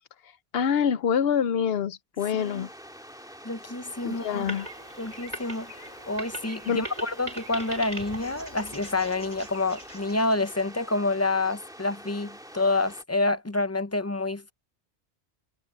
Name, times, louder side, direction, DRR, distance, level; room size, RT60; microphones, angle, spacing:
voice 1, 0.5-2.7 4.0-4.7 6.7-6.8, left 7 dB, 65° left, 0.9 m, -26 dB
sound 1, 2.2-13.0, equal, 5° right, 2.3 m, -46 dB
voice 2, 2.4-2.7 3.4-4.5 5.0-5.7 6.1-14.5, left 2 dB, 15° left, 0.6 m, -28 dB
sound 2, 3.8-10.8, right 1 dB, 40° right, 6.9 m, -41 dB
omnidirectional pair, 1.1 m